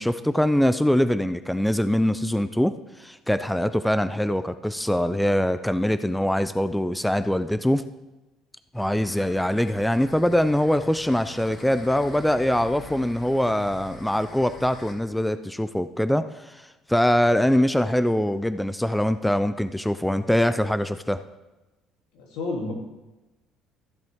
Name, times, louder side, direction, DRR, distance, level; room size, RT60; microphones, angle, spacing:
voice 1, 0.0-2.7 3.0-7.8 8.7-21.2, left 1 dB, 5° left, 11 dB, 0.4 m, -23 dB
sound 1, 8.7-14.9, left 2 dB, 40° left, 2.1 m, -45 dB
voice 2, 22.1-22.7, left 2 dB, 85° left, -2 dB, 3.0 m, -30 dB
14.5 x 7.6 x 3.6 m, 1.1 s
cardioid pair, 95°, 0 cm